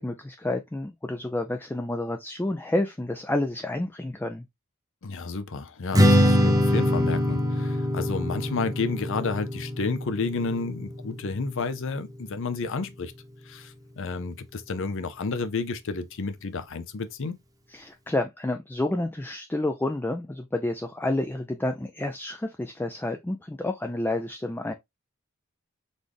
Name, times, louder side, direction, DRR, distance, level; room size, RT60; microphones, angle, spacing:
voice 1, 0.0-4.4 17.7-24.7, left 1 dB, 10° left, 0.4 m, -29 dB
voice 2, 5.0-13.1 13.5-17.4, left 4 dB, 65° left, 0.6 m, -31 dB
Strum, 5.9-12.2, left 1 dB, 15° right, 0.9 m, -24 dB
4.1 x 3.2 x 3.4 m
head